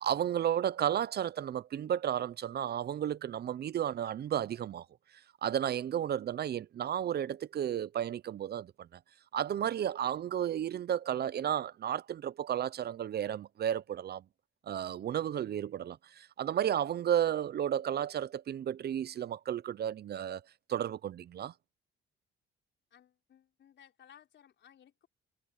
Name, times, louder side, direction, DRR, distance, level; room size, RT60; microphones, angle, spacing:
voice 1, 0.0-4.9 5.1-9.0 9.3-14.2 14.7-20.4 20.7-21.5, right 10 dB, 55° right, 0.7 m, -33 dB
voice 2, 22.9-25.1, left 9 dB, 65° left, 4.5 m, -60 dB
cardioid pair, 90°, 20 cm